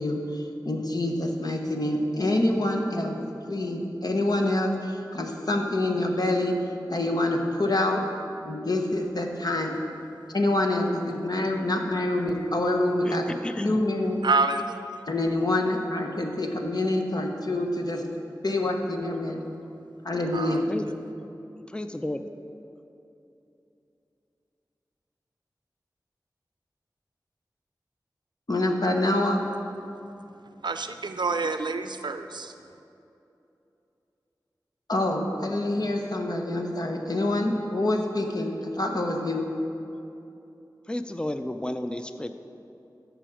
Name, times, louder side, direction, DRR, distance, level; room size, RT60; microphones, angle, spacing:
voice 1, 0.0-3.2 3.5-6.6 6.9-8.0 8.4-9.8 10.3-13.4 13.6-14.2 15.1-18.0 18.4-19.5 20.0-20.7 28.5-29.4 34.9-39.5, left 1 dB, 55° left, 1.1 m, -26 dB
voice 2, 13.0-13.8 20.7-20.8 21.7-22.2 40.9-42.4, left 1 dB, 10° left, 0.5 m, -32 dB
voice 3, 14.2-14.8 20.3-20.6 30.6-32.5, right 3 dB, 70° right, 0.5 m, -27 dB
13.5 x 5.1 x 4.9 m
wide cardioid pair, 40°, 8 cm